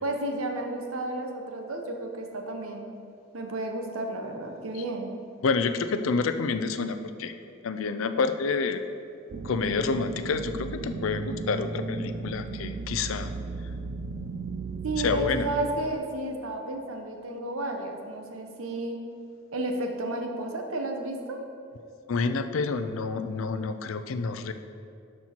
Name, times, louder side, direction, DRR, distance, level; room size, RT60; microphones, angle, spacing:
voice 1, 0.0-2.9 3.3-5.1 14.8-19.0 19.5-21.4, right 2 dB, 85° right, 3 dB, 1.0 m, -32 dB
voice 2, 5.4-7.3 7.6-8.8 9.4-13.3 15.0-15.5 22.1-24.5, left 4 dB, 75° left, 9 dB, 0.5 m, -28 dB
sound 1, 9.3-15.9, right 4 dB, 45° right, 0.3 m, -35 dB
11.5 x 4.4 x 4.5 m, 2.5 s
head